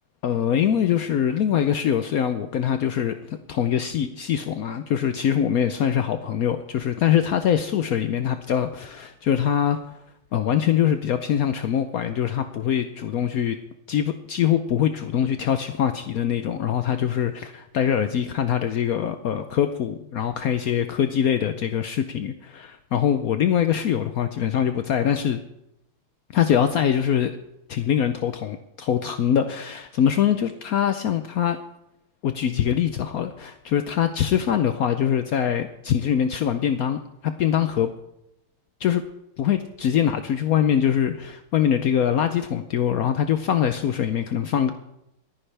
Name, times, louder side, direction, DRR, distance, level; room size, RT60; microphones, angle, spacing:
voice 1, 0.2-9.9 10.3-13.6 13.9-25.4 26.3-27.3 27.7-31.6 32.2-37.9 38.8-39.0 39.4-44.7, left 9 dB, 90° left, 9 dB, 0.7 m, -23 dB
28.0 x 10.0 x 3.4 m, 0.84 s
omnidirectional pair, 2.3 m